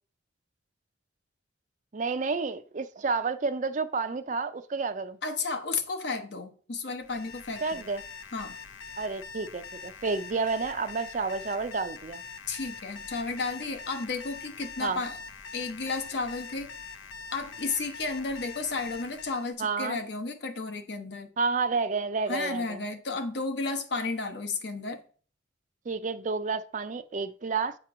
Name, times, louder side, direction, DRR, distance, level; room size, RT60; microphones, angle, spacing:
voice 1, 1.9-5.2 7.6-8.0 9.0-12.2 14.8-15.0 19.6-20.0 21.4-22.8 25.9-27.8, right 4 dB, 40° right, 0.4 m, -30 dB
voice 2, 5.2-7.8 8.3-8.6 12.5-15.2 15.5-16.7 17.3-21.3 22.3-25.0, left 3 dB, 60° left, 0.8 m, -33 dB
Alarm, 7.0-19.5, left 5 dB, 90° left, 0.6 m, -44 dB
8.5 x 3.0 x 5.9 m
head